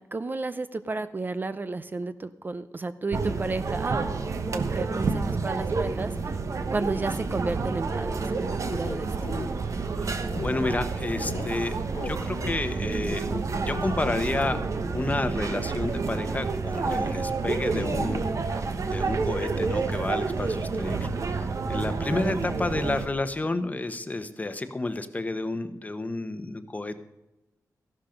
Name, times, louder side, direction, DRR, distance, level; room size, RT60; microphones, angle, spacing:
voice 1, 0.0-6.1 6.7-9.3 22.1-22.4, right 3 dB, 30° right, 12 dB, 0.6 m, -32 dB
sound 1, 3.1-23.1, right 4 dB, 60° right, 1.1 m, -29 dB
sound 2, 8.7-9.5 10.3-10.7 11.1-11.5 11.9-12.1 12.4-12.5 13.1-14.6 16.8-17.1 17.4-18.2, left 5 dB, 60° left, 0.7 m, -36 dB
voice 2, 10.0-11.7 12.0-14.6 14.9-18.6 18.9-27.0, left 2 dB, 25° left, 10 dB, 1.0 m, -31 dB
14.0 x 12.0 x 5.2 m, 0.96 s
wide cardioid pair, 95°, 6 cm